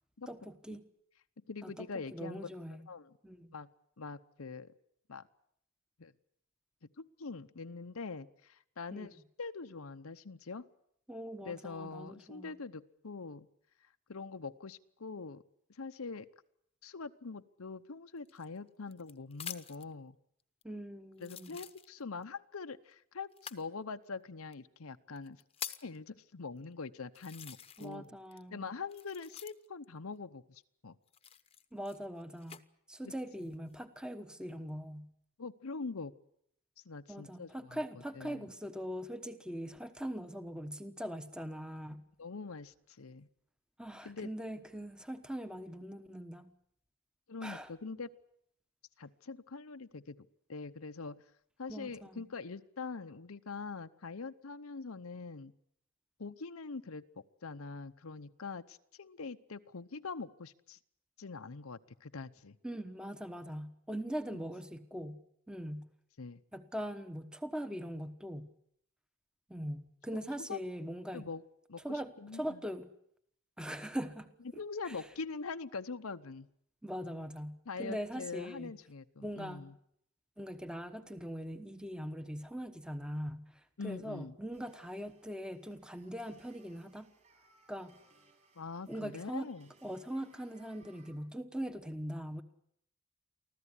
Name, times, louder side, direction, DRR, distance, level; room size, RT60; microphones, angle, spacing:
voice 1, 0.3-0.8 1.6-2.9 3.2-3.5 8.9-9.1 11.1-12.5 20.6-21.6 27.8-28.7 31.7-32.6 32.9-35.1 37.1-42.0 43.8-46.5 47.4-47.7 51.7-52.2 62.6-65.2 65.5-65.9 66.5-68.5 69.5-71.2 71.8-72.9 73.6-74.3 74.8-75.0 76.8-78.7 79.2-79.7 80.4-87.1 87.7-87.9 88.9-89.5 89.8-92.4, equal, 5° right, 9 dB, 1.1 m, -41 dB
voice 2, 1.5-2.5 2.9-3.1 3.5-3.7 4.0-4.7 5.1-5.3 6.0-6.1 6.8-10.6 11.4-13.5 14.1-15.4 15.7-16.3 16.8-20.2 21.2-25.4 25.8-28.1 28.5-31.0 33.1-33.2 35.4-36.1 36.9-37.8 38.2-38.5 42.2-43.3 44.0-44.3 47.3-48.1 49.0-51.2 51.6-55.5 56.2-57.0 57.4-60.8 61.2-62.6 66.2-66.4 70.1-70.2 70.5-70.6 71.1-71.4 71.7-72.6 74.5-76.5 77.7-79.7 83.8-84.3 88.6-89.7, left 4 dB, 85° left, 8 dB, 0.8 m, -43 dB
sound 1, 18.2-19.9 20.6-20.7 21.2-22.2 23.3-23.7 24.5-24.6 25.2-26.0 26.6-26.7 27.1-28.0 28.3-29.8 31.1-32.6 33.3-33.8, left 8 dB, 30° left, 1.0 m, -47 dB
sound 2, 84.5-91.1, right 3 dB, 35° right, 6.8 m, -67 dB
25.0 x 15.5 x 9.9 m, 0.71 s
head